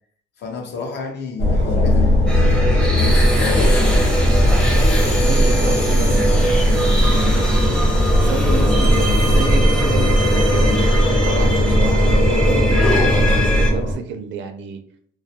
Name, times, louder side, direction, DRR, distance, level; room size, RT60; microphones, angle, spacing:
voice 1, 0.4-4.2, left 4 dB, 60° left, 0.6 m, -30 dB
sound 1, 1.4-13.9, equal, 90° left, 0.9 m, -17 dB
sound 2, 2.3-13.7, equal, 5° left, 0.5 m, -23 dB
sound 3, 2.9-8.0, equal, 30° left, 0.9 m, -38 dB
voice 2, 5.0-7.8 8.1-10.7 11.2-14.8, right 6 dB, 70° right, 0.4 m, -29 dB
2.3 x 2.2 x 2.7 m
cardioid pair, 90°, 20 cm